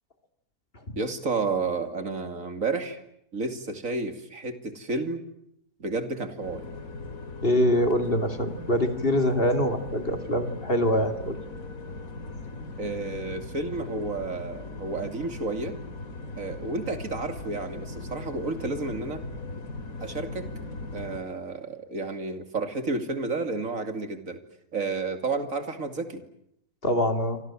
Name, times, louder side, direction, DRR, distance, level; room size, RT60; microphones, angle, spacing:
voice 1, 1.0-3.0 3.3-5.2 5.8-6.6 12.8-15.8 16.4-19.2 20.0-20.5 20.9-24.4 24.7-26.2, right 3 dB, 55° right, 8 dB, 3.0 m, -31 dB
sound 1, 6.4-21.2, left 2 dB, 60° left, 3.1 m, -39 dB
voice 2, 7.4-11.4 26.8-27.4, equal, 35° left, 7 dB, 2.7 m, -24 dB
27.5 x 25.5 x 7.5 m, 0.74 s
omnidirectional pair, 1.7 m